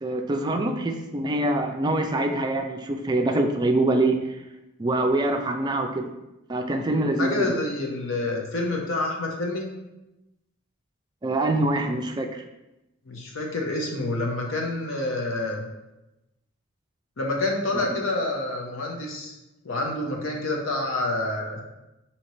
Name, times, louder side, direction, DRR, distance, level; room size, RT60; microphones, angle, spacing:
voice 1, 0.0-4.4 4.8-6.1 6.5-7.5 11.2-12.4 17.7-17.8, right 2 dB, 20° right, 5 dB, 0.3 m, -24 dB
voice 2, 7.2-9.7 13.1-15.6 17.2-19.3 19.6-21.6, left 2 dB, 70° left, 0 dB, 0.8 m, -28 dB
5.2 x 2.8 x 3.1 m, 0.96 s
head